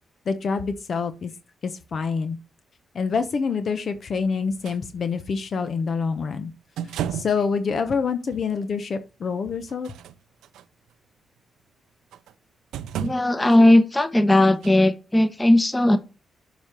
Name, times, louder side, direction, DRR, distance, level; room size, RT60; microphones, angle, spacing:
voice 1, 0.3-1.3 1.6-2.4 2.9-6.5 7.1-9.9, left 5 dB, 60° left, 10 dB, 0.9 m, -26 dB
sound 1, 4.6-4.8 6.8-7.4 8.3-8.4 9.7-10.6 12.1-12.3 12.7-13.6 14.6-14.7, right 10 dB, 85° right, 0.5 m, -32 dB
voice 2, 13.0-16.0, left 1 dB, 20° left, 11 dB, 1.3 m, -17 dB
7.2 x 5.2 x 6.0 m, 0.30 s
supercardioid pair, 60°, 0 cm